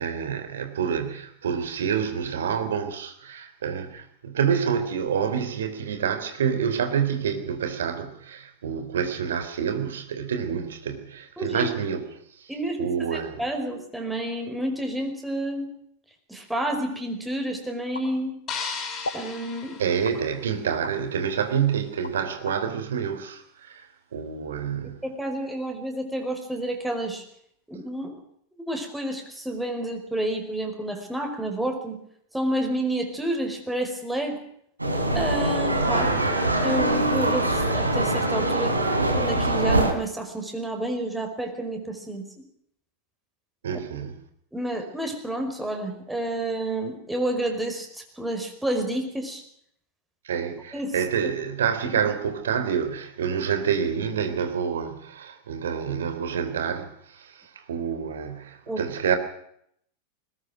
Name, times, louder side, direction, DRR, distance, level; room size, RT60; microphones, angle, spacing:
voice 1, 0.0-12.1 12.4-12.5 12.8-13.4 19.8-23.9 24.1-25.0 35.9-36.3 43.6-44.1 50.2-59.2, right 7 dB, 65° right, 3.4 m, -28 dB
voice 2, 11.4-11.7 12.5-13.0 13.4-15.7 16.3-18.4 19.1-19.8 24.8-27.2 27.7-28.1 28.7-32.0 32.3-34.4 35.2-36.1 36.6-38.8 39.1-42.2 44.5-47.9 48.2-49.4 50.7-51.0 58.7-58.8, right 1 dB, 5° right, 5.2 m, -29 dB
sound 1, 17.9-18.6 19.0-19.3 20.0-21.0 21.5-22.6, left 2 dB, 75° left, 4.2 m, -37 dB
sound 2, 18.5-20.8, left 5 dB, 30° left, 5.6 m, -36 dB
sound 3, 34.8-39.9, right 1 dB, 85° right, 3.5 m, -23 dB
21.0 x 20.0 x 6.4 m
figure-of-eight pair, 90°, 0 cm